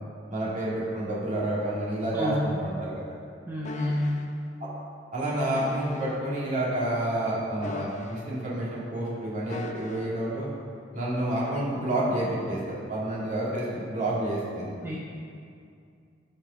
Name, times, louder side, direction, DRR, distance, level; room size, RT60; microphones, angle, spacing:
voice 1, 0.3-2.9 5.1-10.5 10.9-14.7, right 1 dB, 40° right, -7 dB, 2.4 m, -29 dB
voice 2, 2.1-2.6 3.5-4.3 14.8-15.0, left 1 dB, 15° right, -4 dB, 0.7 m, -29 dB
sound 1, 3.6-4.3 5.5-6.2 7.6-8.5 9.5-10.2 11.4-11.6, left 2 dB, 40° left, 0.6 m, -41 dB
14.0 x 5.5 x 3.7 m, 2.4 s
head